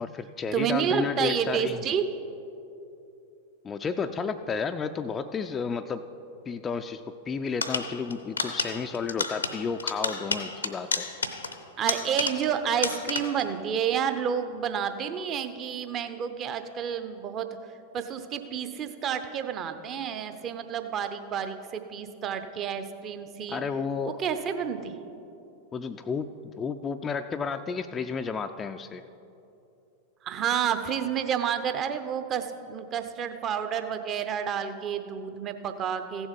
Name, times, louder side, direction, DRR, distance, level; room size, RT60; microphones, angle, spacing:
voice 1, 0.0-1.8 3.6-6.1 6.5-11.1 23.5-24.2 25.7-29.0, left 5 dB, 20° left, 7 dB, 0.3 m, -32 dB
voice 2, 0.5-2.0 11.8-17.5 17.9-23.6 24.1-25.0 30.2-36.3, right 8 dB, 30° right, 8 dB, 0.7 m, -30 dB
sound 1, 7.6-12.6 12.8-13.5, left 4 dB, 75° left, 0.7 m, -31 dB
15.0 x 7.2 x 5.2 m, 2.8 s
figure-of-eight pair, 90°, 0 cm